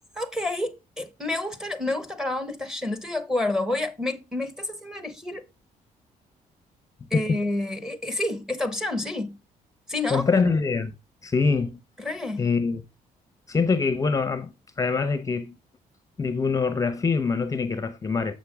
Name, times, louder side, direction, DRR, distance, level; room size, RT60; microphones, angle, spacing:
voice 1, 0.1-5.5 7.1-9.4 9.9-10.2 12.0-12.5, left 2 dB, 5° right, 0.9 m, -29 dB
voice 2, 10.1-10.9 11.2-11.8 12.4-12.8 13.5-15.6 16.2-18.3, left 4 dB, 20° left, 0.7 m, -24 dB
7.4 x 6.0 x 3.5 m
cardioid pair, 130°, 15 cm